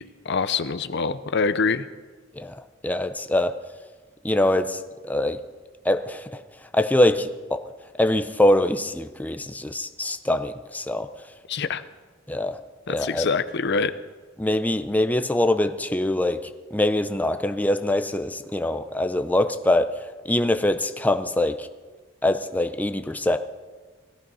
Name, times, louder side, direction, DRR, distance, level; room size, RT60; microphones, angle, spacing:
voice 1, 0.0-1.9 11.5-11.8 12.9-13.9, left 4 dB, 60° left, 13 dB, 0.7 m, -25 dB
voice 2, 2.4-3.6 4.2-5.4 5.8-6.4 6.7-7.6 8.0-11.1 12.3-12.6 12.9-13.3 14.4-19.9 20.3-21.7 22.2-23.4, left 1 dB, 10° left, 8 dB, 0.6 m, -23 dB
18.0 x 14.5 x 5.5 m, 1.4 s
head